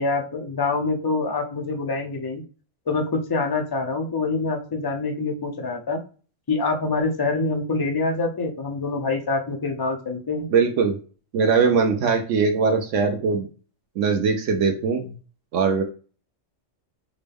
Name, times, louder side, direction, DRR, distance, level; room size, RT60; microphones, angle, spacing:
voice 1, 0.0-2.4 2.9-6.0 6.5-10.5, left 3 dB, 30° left, 3 dB, 0.5 m, -25 dB
voice 2, 10.5-11.0 11.3-13.5 14.0-15.1 15.5-15.8, right 5 dB, 75° right, 4 dB, 1.0 m, -21 dB
6.0 x 2.2 x 3.4 m, 0.37 s
omnidirectional pair, 1.3 m